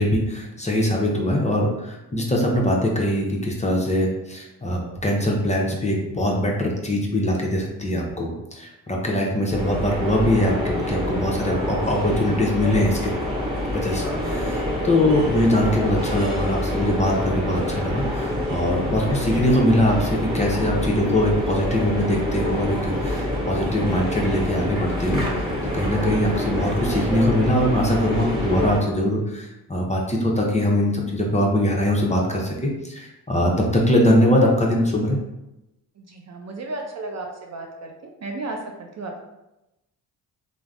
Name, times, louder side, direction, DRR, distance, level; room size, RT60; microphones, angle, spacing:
voice 1, 0.0-13.1 13.7-25.5 25.7-35.2, left 1 dB, 15° left, -1 dB, 0.6 m, -22 dB
sound 1, 9.5-28.8, left 1 dB, 10° right, 1.3 m, -26 dB
voice 2, 36.0-37.9 38.2-39.2, right 2 dB, 40° right, 2 dB, 0.5 m, -33 dB
3.2 x 2.0 x 2.4 m, 0.93 s
supercardioid pair, 55°, 42 cm